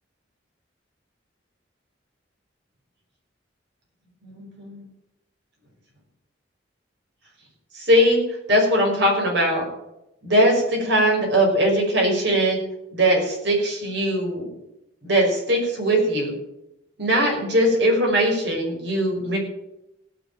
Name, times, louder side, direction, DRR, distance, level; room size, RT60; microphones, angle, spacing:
voice 1, 4.2-4.9 7.7-8.2 8.5-9.7 10.2-12.6 12.9-14.5 15.0-16.3 17.0-19.4, equal, 60° right, 0 dB, 5.7 m, -20 dB
16.5 x 6.5 x 8.9 m, 0.87 s
head